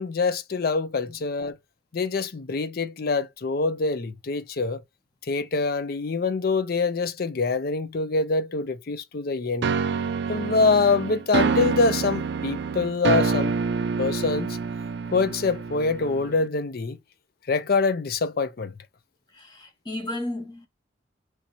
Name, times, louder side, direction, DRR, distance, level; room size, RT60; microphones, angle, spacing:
voice 1, 0.0-1.6 1.9-4.8 5.3-9.7 10.3-13.5 14.0-14.6 15.1-17.0 17.5-18.7, left 4 dB, 55° left, 0.5 m, -25 dB
Piano Ending Tune, 9.6-16.5, right 5 dB, 65° right, 0.3 m, -27 dB
voice 2, 19.3-20.7, left 1 dB, 25° left, 0.9 m, -34 dB
3.2 x 2.8 x 4.4 m
head